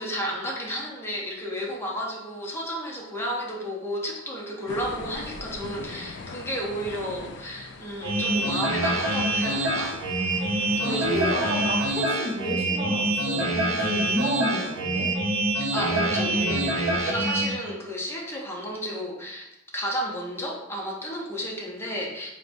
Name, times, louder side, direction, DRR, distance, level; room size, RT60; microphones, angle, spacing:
voice 1, 0.0-10.0 10.3-10.4 10.8-11.3 15.7-22.3, equal, 10° left, -2 dB, 0.6 m, -32 dB
sound 1, 4.7-12.0, left 3 dB, 60° left, 0.3 m, -41 dB
sound 2, 8.0-17.5, right 1 dB, 75° right, 0.5 m, -25 dB
voice 2, 10.8-15.1, equal, 30° right, -7 dB, 0.8 m, -31 dB
4.6 x 2.1 x 2.5 m, 0.91 s
head